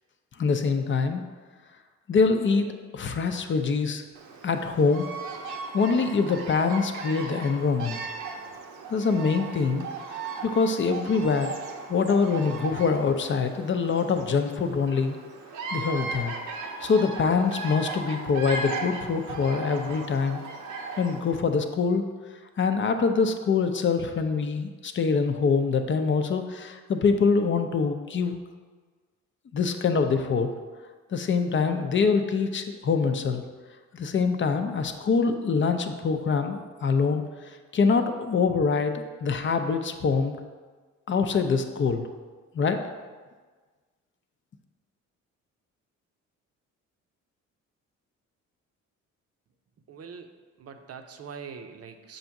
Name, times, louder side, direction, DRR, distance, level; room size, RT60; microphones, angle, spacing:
voice 1, 0.4-1.2 2.1-4.0 4.4-5.1 5.7-8.0 8.9-9.9 10.4-11.5 11.9-15.2 15.7-16.3 16.8-20.4 21.0-22.0 22.6-28.4 29.5-30.5 31.1-33.4 33.9-37.2 37.7-40.4 41.1-42.1 42.5-42.8, left 5 dB, 40° left, 7 dB, 0.6 m, -24 dB
Bird vocalization bird call bird song, 4.1-21.4, right 3 dB, 85° right, 0.8 m, -37 dB
voice 2, 49.9-50.3 50.6-52.2, right 6 dB, 55° right, 6 dB, 0.7 m, -42 dB
7.1 x 2.7 x 5.8 m, 1.4 s
cardioid pair, 90°, 30 cm